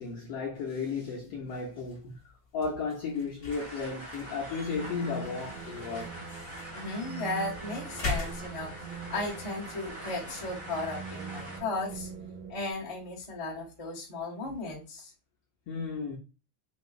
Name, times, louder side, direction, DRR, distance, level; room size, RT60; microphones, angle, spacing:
voice 1, 0.0-2.2 2.5-6.2 15.7-16.2, left 4 dB, 75° left, 1.4 m, -34 dB
sound 1, 1.1-13.9, left 3 dB, 25° left, 1.4 m, -44 dB
sound 2, 3.5-11.6, right 1 dB, 15° right, 1.0 m, -44 dB
sound 3, 4.7-12.7, right 6 dB, 85° right, 2.1 m, -44 dB
voice 2, 6.7-12.1 12.5-15.1, left 2 dB, 40° left, 0.4 m, -36 dB
5.2 x 3.0 x 2.4 m
omnidirectional pair, 3.6 m